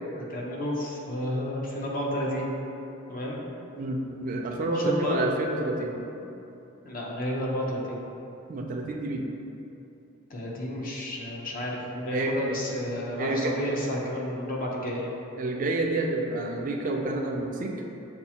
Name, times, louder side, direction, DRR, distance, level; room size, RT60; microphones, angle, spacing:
voice 1, 0.1-2.5 3.1-3.4 4.7-5.3 6.2-6.3 6.8-8.0 10.3-15.1, equal, 40° left, -3 dB, 0.6 m, -31 dB
voice 2, 3.8-6.0 8.5-9.3 12.1-12.6 13.2-13.5 15.4-17.7, right 2 dB, 40° right, 1 dB, 0.3 m, -28 dB
6.8 x 2.4 x 2.8 m, 2.8 s
head